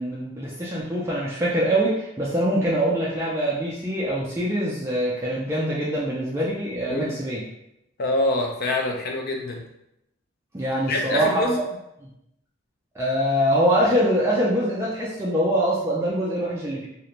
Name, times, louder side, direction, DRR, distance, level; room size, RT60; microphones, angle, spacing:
voice 1, 0.0-7.4 10.5-11.6 12.0-12.1 12.9-16.9, equal, 15° right, -6 dB, 0.4 m, -24 dB
voice 2, 8.0-9.6 10.9-11.6, left 2 dB, 50° left, 2 dB, 0.4 m, -25 dB
2.4 x 2.1 x 2.9 m, 0.84 s
head